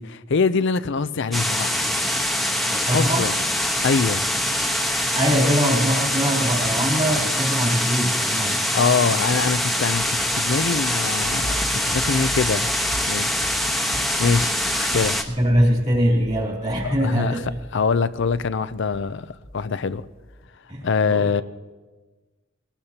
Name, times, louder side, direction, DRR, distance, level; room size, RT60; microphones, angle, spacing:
voice 1, 0.0-1.8 2.9-3.3 3.8-4.2 8.5-12.7 13.1-13.6 14.2-15.2 16.8-17.4 17.7-20.0 20.8-21.4, left 5 dB, 65° left, 15 dB, 0.5 m, -24 dB
sound 1, 1.3-15.2, left 1 dB, ahead, 1.1 m, -24 dB
voice 2, 2.7-3.3 5.1-8.7 15.3-17.6 20.7-21.4, equal, 35° right, -2 dB, 3.1 m, -22 dB
sound 2, 11.2-19.6 19.9-20.5, equal, 90° left, 2.7 m, -38 dB
21.0 x 19.0 x 2.9 m, 1.3 s
head